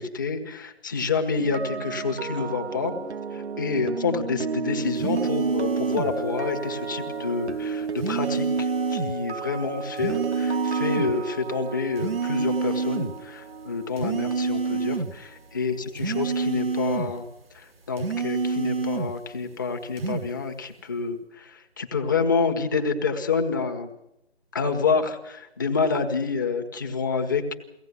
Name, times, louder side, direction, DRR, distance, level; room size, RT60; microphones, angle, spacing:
voice 1, 0.0-2.9 3.3-17.2 17.5-23.9 24.5-27.5, left 4 dB, 20° left, 4 dB, 1.4 m, -28 dB
sound 1, 1.3-15.4 15.6-15.9, right 5 dB, 80° right, 1.4 m, -33 dB
sound 2, 5.0-6.1 8.0-9.1 10.0-11.1 12.0-13.1 14.0-15.2 16.0-17.2 18.0-19.2 20.0-20.3, right 4 dB, 60° right, 1.3 m, -27 dB
23.0 x 17.5 x 9.6 m, 0.85 s
figure-of-eight pair, 170°, 33 cm